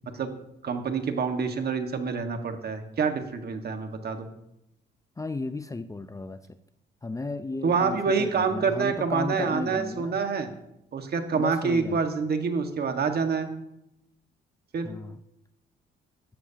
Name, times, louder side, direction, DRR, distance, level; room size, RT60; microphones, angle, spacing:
voice 1, 0.6-4.3 7.6-10.5 10.9-13.5 14.7-14.9, right 5 dB, 55° right, 6 dB, 1.7 m, -27 dB
voice 2, 5.2-6.6 7.0-10.2 11.3-12.0 14.8-15.2, left 2 dB, 15° left, 10 dB, 0.6 m, -34 dB
16.5 x 12.5 x 2.9 m, 0.82 s
cardioid pair, 90°, 20 cm